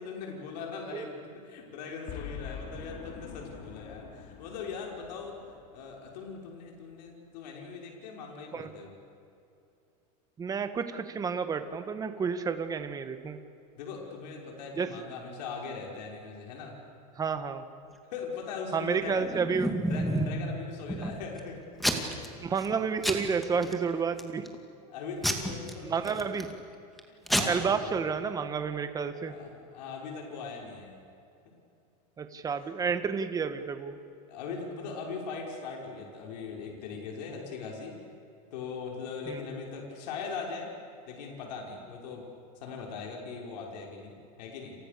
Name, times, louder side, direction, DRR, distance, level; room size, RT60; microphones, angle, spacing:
voice 1, 0.0-8.9 13.7-16.8 18.1-19.4 19.8-21.9 22.3-22.4 24.8-26.3 27.1-28.0 29.1-30.9 32.6-32.7 34.3-38.0 38.5-40.7 41.1-42.3 42.6-44.1 44.4-44.8, left 5 dB, 80° left, 0 dB, 5.9 m, -40 dB
Boom, 2.1-6.5, left 6 dB, 40° left, 3.3 m, -45 dB
voice 2, 10.4-13.4 14.8-14.9 17.1-17.6 18.7-19.7 21.0-21.1 22.4-24.5 25.8-26.5 27.5-29.3 32.2-34.0 39.3-39.4, right 6 dB, 15° right, 9 dB, 1.6 m, -30 dB
Packing tape duct tape / Tearing, 19.0-20.4 20.9-21.4 21.8-22.3 22.6-22.8 23.0-23.7 24.2-24.6 25.2-26.5 27.0-27.1 27.3-27.4, equal, ahead, 2.3 m, -30 dB
30.0 x 28.5 x 6.9 m, 2.6 s
supercardioid pair, 155°, 21 cm